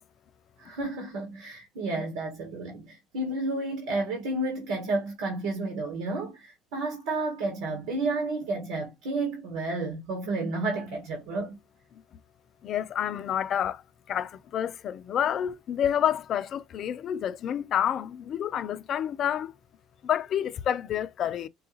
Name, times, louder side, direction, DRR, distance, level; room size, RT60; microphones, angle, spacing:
voice 1, 0.6-11.6, right 2 dB, 75° right, 1.4 m, -31 dB
voice 2, 12.6-13.8 14.1-19.5 20.0-21.5, left 9 dB, 55° left, 0.4 m, -29 dB
4.4 x 2.3 x 3.1 m
hypercardioid pair, 70°, 0 cm